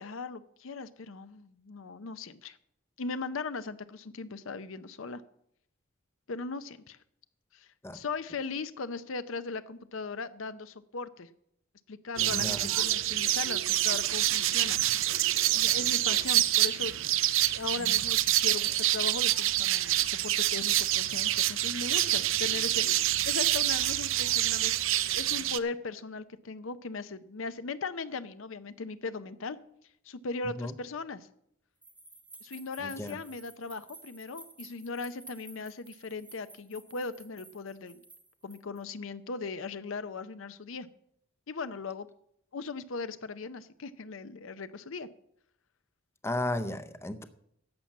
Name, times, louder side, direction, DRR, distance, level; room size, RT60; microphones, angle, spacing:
voice 1, 0.0-2.6 3.0-5.2 6.3-7.0 7.5-7.7 7.9-11.3 11.9-14.8 15.5-17.0 17.5-24.7 25.2-29.6 30.1-31.3 32.4-38.0 38.4-40.9 41.5-42.1 42.5-45.1, left 4 dB, 65° left, 0.6 m, -38 dB
sound 1, 12.2-25.6, right 14 dB, 65° right, 0.5 m, -27 dB
voice 2, 12.3-12.7 17.8-18.0 30.4-30.7 32.8-33.2 46.2-47.2, left 1 dB, 10° left, 0.6 m, -35 dB
sound 2, 31.8-38.8, right 2 dB, 5° right, 1.1 m, -53 dB
11.0 x 7.3 x 7.3 m
head